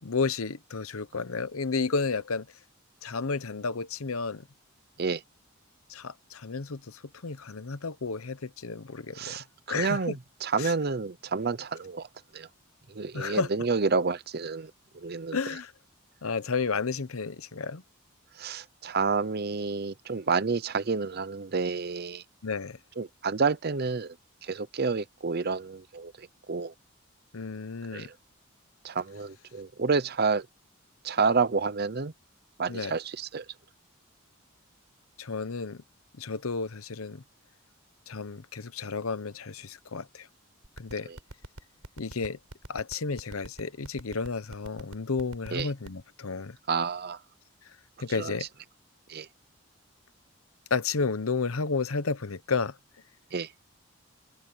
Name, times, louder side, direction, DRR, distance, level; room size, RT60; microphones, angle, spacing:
voice 1, 0.0-2.5 3.0-4.4 5.9-9.4 9.7-10.1 10.6-10.7 13.1-13.5 15.3-15.7 16.2-17.8 22.4-22.8 27.3-28.1 32.7-33.0 35.2-35.8 36.2-37.2 38.1-40.3 40.8-41.1 42.0-42.4 42.7-46.6 48.0-48.5 50.7-52.8, left 4 dB, 85° left, 0.9 m, -32 dB
voice 2, 9.1-12.1 12.3-12.5 12.9-15.4 18.4-22.2 23.0-24.2 24.4-26.7 27.9-28.1 28.8-30.5 31.0-32.1 32.6-33.5 41.1-41.2 45.5-45.7 46.7-47.2 48.2-48.3 49.1-49.3 53.3-53.5, right 4 dB, 50° right, 0.7 m, -29 dB
sound 1, 40.6-46.0, right 1 dB, 80° right, 4.4 m, -42 dB
head